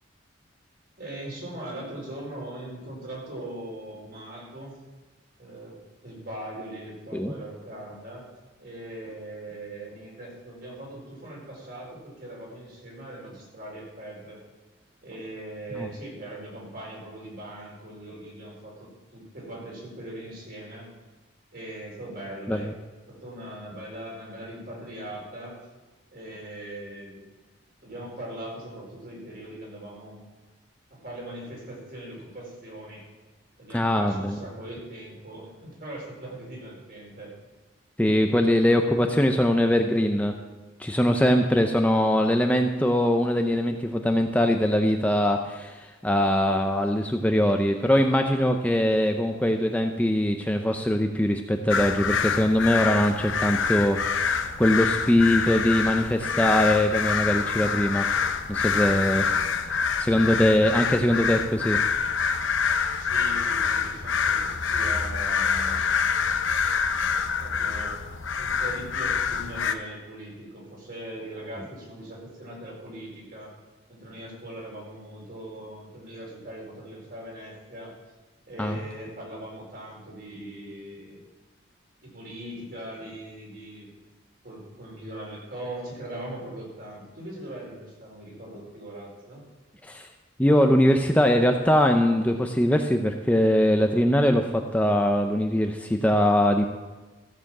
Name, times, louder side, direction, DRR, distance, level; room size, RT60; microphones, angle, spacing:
voice 1, 1.0-4.8 5.4-8.3 8.6-14.4 15.0-20.9 21.5-22.7 23.1-25.6 26.1-27.2 27.8-30.2 30.9-33.0 33.6-37.3 63.0-65.9 67.4-68.0 68.4-73.5 73.9-77.9 78.5-81.2 82.0-83.9 84.4-89.4, right 1 dB, 50° right, -3 dB, 4.8 m, -40 dB
voice 2, 33.7-34.4 38.0-40.3 40.8-58.1 58.5-59.3 60.0-61.8 78.6-78.8 89.8-90.1 90.4-96.6, left 1 dB, 10° left, 4 dB, 0.6 m, -22 dB
sound 1, 51.7-69.7, left 6 dB, 85° left, 0.8 m, -26 dB
14.5 x 6.9 x 7.3 m, 1.2 s
head